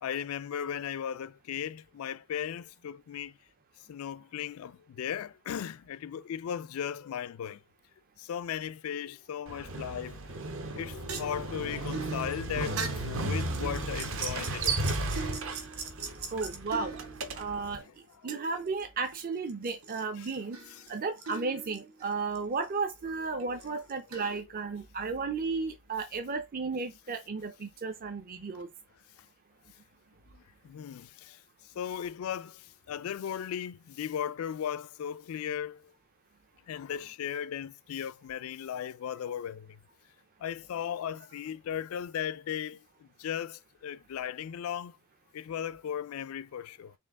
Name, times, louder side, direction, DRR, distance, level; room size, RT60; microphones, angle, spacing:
voice 1, 0.0-3.4 3.9-7.6 8.2-15.0 20.2-20.3 20.8-20.9 23.4-23.5 30.3-35.9 36.7-39.8 40.4-45.0 45.3-46.9, left 9 dB, 70° left, 0.3 m, -37 dB
Motorcycle, 9.5-17.8, right 2 dB, 65° right, 1.0 m, -35 dB
sound 1, 10.7-17.7 18.3-19.2 19.5-22.4 22.6-22.7 23.4-24.4, right 5 dB, 80° right, 1.2 m, -41 dB
voice 2, 16.3-16.9 17.4-17.8 18.2-20.6 20.9-28.7, right 4 dB, 40° right, 0.5 m, -34 dB
4.4 x 3.2 x 3.5 m
head